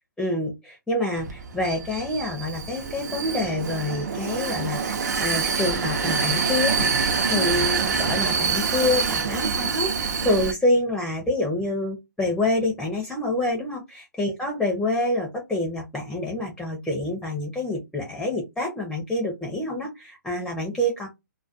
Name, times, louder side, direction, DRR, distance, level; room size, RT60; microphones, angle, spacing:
voice 1, 0.2-4.8 5.2-21.1, left 2 dB, 5° left, 0 dB, 0.5 m, -27 dB
Vehicle, 1.1-10.5, right 5 dB, 55° right, 0.6 m, -26 dB
2.2 x 2.2 x 2.5 m, 0.20 s
hypercardioid pair, 140°, 11 cm